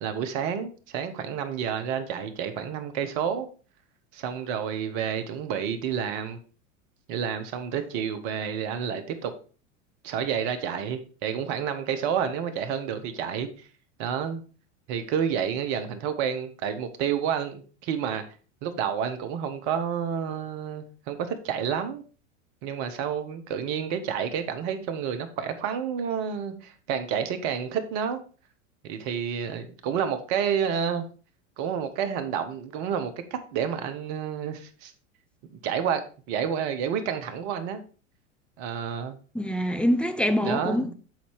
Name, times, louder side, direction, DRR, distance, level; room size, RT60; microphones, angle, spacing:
voice 1, 0.0-3.5 4.1-6.4 7.1-9.3 10.0-13.5 14.0-14.4 14.9-18.2 18.6-22.0 22.6-28.2 28.8-31.0 31.6-34.9 35.6-36.0 36.3-37.8 38.6-39.2 40.4-40.9, right 8 dB, 55° right, 1.3 m, -29 dB
voice 2, 39.3-40.9, equal, 5° left, 0.6 m, -25 dB
7.8 x 4.3 x 4.6 m
hypercardioid pair, 90°, 38 cm